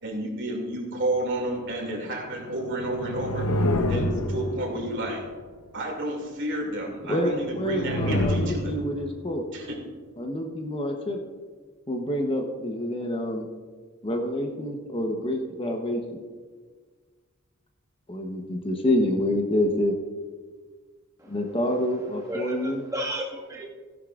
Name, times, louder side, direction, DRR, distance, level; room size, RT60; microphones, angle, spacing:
voice 1, 0.0-3.5 3.8-5.2 5.7-8.8 9.5-9.8, right 1 dB, 60° right, 1 dB, 2.4 m, -31 dB
sound 1, 2.2-5.2 7.3-9.2, left 1 dB, 90° left, 0.9 m, -28 dB
voice 2, 7.1-9.4 10.2-11.2 11.9-13.5 14.0-16.2 18.1-19.9 21.3-22.8, left 1 dB, 25° left, 3 dB, 0.9 m, -27 dB
voice 3, 21.2-21.5 22.3-23.7, right 1 dB, 15° right, -4 dB, 1.7 m, -34 dB
15.5 x 11.0 x 2.5 m, 1.5 s
head